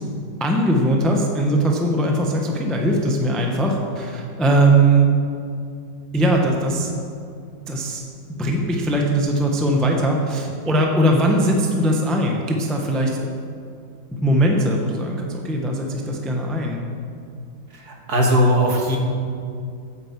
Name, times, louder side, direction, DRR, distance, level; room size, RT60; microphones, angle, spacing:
voice 1, 0.4-5.1 6.1-6.9 7.7-8.0 8.3-13.2 14.1-16.8, right 1 dB, ahead, 0 dB, 0.8 m, -20 dB
voice 2, 17.7-19.0, equal, 55° right, 0 dB, 2.0 m, -19 dB
9.2 x 8.0 x 7.4 m, 2.4 s
omnidirectional pair, 2.1 m